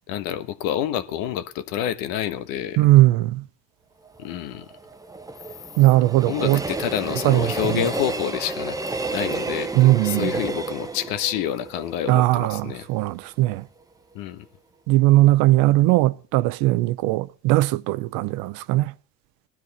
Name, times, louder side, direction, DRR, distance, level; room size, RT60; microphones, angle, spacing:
voice 1, 0.1-2.8 4.2-4.7 6.2-8.8 9.1-12.9 14.1-14.5, left 11 dB, 90° left, 1.2 m, -28 dB
voice 2, 2.8-3.4 5.8-6.6 7.2-7.9 9.7-10.3 12.1-13.7 14.9-18.9, right 17 dB, 85° right, 0.6 m, -19 dB
Train, 4.1-13.1 13.5-13.6, right 3 dB, 10° right, 0.8 m, -31 dB
18.0 x 12.5 x 4.1 m
cardioid pair, 110°, 34 cm